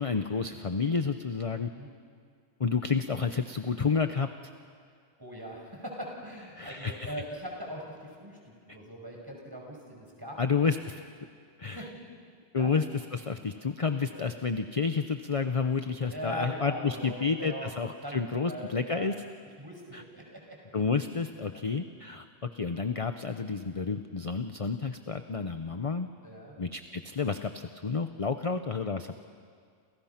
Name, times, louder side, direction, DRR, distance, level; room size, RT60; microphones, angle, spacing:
voice 1, 0.0-1.7 2.6-4.3 6.6-7.1 10.4-11.0 11.6-11.8 12.5-12.8 13.1-19.1 19.9-20.0 20.7-26.1 26.6-29.2, left 5 dB, 30° left, 8 dB, 0.8 m, -30 dB
voice 2, 5.2-10.4 11.6-12.0 12.5-12.7 14.1-14.3 16.1-19.1 19.6-20.6 21.5-21.6 26.2-26.5, equal, 15° right, -1 dB, 6.0 m, -41 dB
29.0 x 29.0 x 5.9 m, 2.2 s
omnidirectional pair, 1.3 m